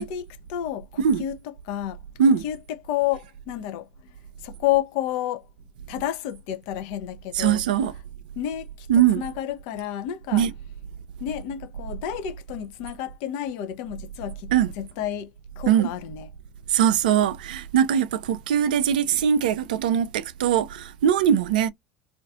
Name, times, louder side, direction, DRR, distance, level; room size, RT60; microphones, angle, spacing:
voice 1, 0.0-2.0 2.4-2.6 2.8-3.9 4.4-5.5 5.9-7.6 8.4-8.9 9.2-10.4 11.2-15.3 15.6-16.3, left 12 dB, 60° left, 0.5 m, -30 dB
voice 2, 7.3-7.9 8.9-9.3 10.3-10.5 14.5-14.7 15.6-15.9 16.7-21.7, right 8 dB, 70° right, 0.4 m, -21 dB
2.5 x 2.4 x 2.3 m
hypercardioid pair, 75°, 5 cm